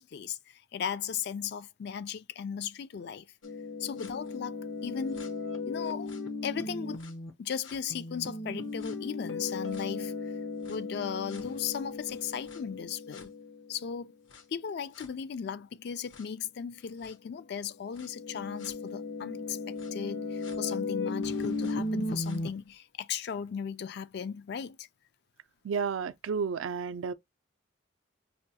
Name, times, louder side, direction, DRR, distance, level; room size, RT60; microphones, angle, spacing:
voice 1, 0.0-3.3 3.8-5.3 5.6-6.1 6.4-7.1 7.4-10.3 10.7-13.3 13.7-14.1 14.5-24.9, left 7 dB, 55° left, 0.3 m, -37 dB
sound 1, 3.4-7.3 7.6-13.8 14.3-14.4 15.0-15.1 16.1-16.2 17.0-17.1 18.0-22.5, left 3 dB, 75° left, 0.8 m, -36 dB
voice 2, 25.6-27.1, right 5 dB, 80° right, 0.4 m, -31 dB
5.5 x 2.2 x 2.7 m
head